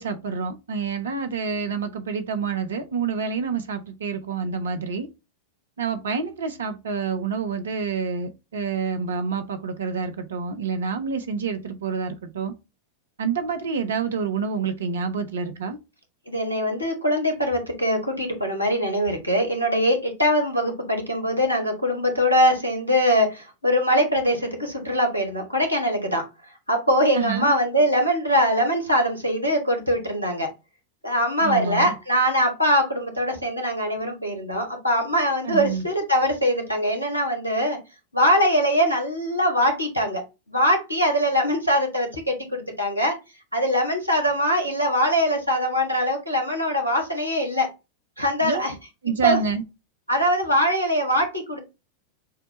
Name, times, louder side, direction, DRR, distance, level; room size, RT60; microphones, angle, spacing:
voice 1, 0.0-5.1 5.8-12.5 13.2-15.8 27.1-27.5 31.4-31.9 35.4-35.9 48.4-48.7 49.0-49.6, right 5 dB, 65° right, 0.8 m, -28 dB
voice 2, 16.3-26.3 26.7-30.5 31.0-37.8 38.1-40.2 40.5-43.2 43.5-47.7 48.2-48.7 49.2-49.4 50.1-51.6, equal, 90° left, 1.3 m, -22 dB
6.6 x 2.3 x 3.0 m
figure-of-eight pair, 90°, 0 cm